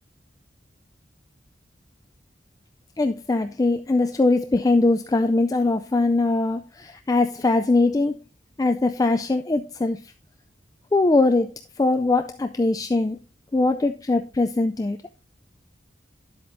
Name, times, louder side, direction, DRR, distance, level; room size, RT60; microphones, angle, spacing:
voice 1, 3.0-8.2 8.6-10.1 10.9-13.2 13.5-15.0, left 2 dB, 20° left, 0.3 m, -21 dB
10.5 x 7.8 x 2.6 m
head